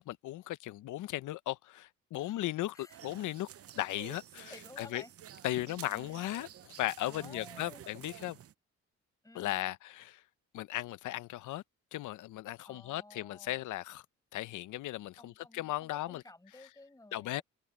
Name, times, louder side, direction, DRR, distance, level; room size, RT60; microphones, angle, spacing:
voice 1, 0.0-3.5 3.8-4.5 4.8-5.0 5.4-8.4 9.3-10.2 10.5-11.6 11.9-14.0 14.3-16.2 17.1-17.4, left 15 dB, 80° left, 0.8 m, -37 dB
sound 1, 2.9-8.5, right 11 dB, 50° right, 0.7 m, -51 dB
voice 2, 4.5-5.1 7.1-7.8 9.2-9.5 12.7-13.7 15.2-17.4, left 2 dB, 10° left, 6.0 m, -54 dB
cardioid pair, 90°, 30 cm